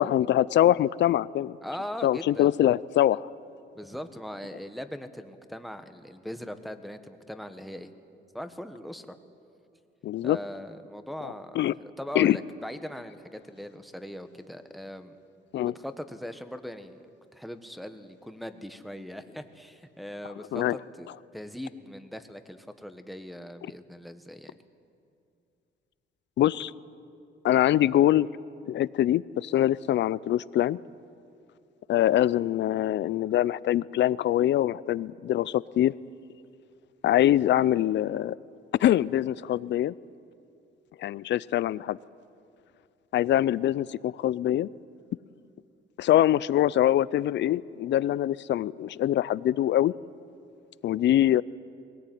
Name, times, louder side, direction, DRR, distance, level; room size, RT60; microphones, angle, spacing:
voice 1, 0.0-1.6 2.0-3.3 10.0-10.4 11.2-11.7 12.1-12.4 15.5-15.7 20.5-20.8 26.4-26.7 27.4-28.3 28.7-30.8 31.9-35.9 37.0-38.4 38.8-39.9 41.0-42.0 43.1-44.7 46.0-49.9 50.8-51.4, left 12 dB, 65° left, 20 dB, 0.5 m, -24 dB
voice 2, 1.6-2.5 3.7-7.9 8.3-9.2 10.2-15.1 15.6-17.0 17.3-21.1 21.3-24.5, equal, ahead, 8 dB, 1.4 m, -40 dB
21.0 x 18.0 x 9.3 m, 2.5 s
cardioid pair, 90°, 20 cm